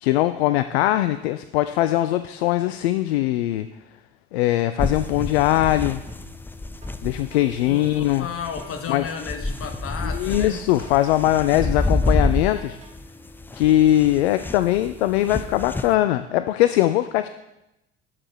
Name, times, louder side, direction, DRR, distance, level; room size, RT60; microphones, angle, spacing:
voice 1, 0.0-3.7 4.3-6.0 7.0-8.3 8.9-9.1 10.1-12.8 13.5-17.3, left 14 dB, 65° left, 12 dB, 0.5 m, -21 dB
sound 1, 4.8-15.9, left 2 dB, 5° left, 0.4 m, -29 dB
sound 2, 6.1-6.9 7.3-12.9, right 1 dB, 20° right, 1.9 m, -48 dB
voice 2, 7.6-10.6, left 6 dB, 40° left, 6 dB, 1.4 m, -33 dB
11.0 x 6.6 x 4.5 m, 0.90 s
figure-of-eight pair, 60°, 34 cm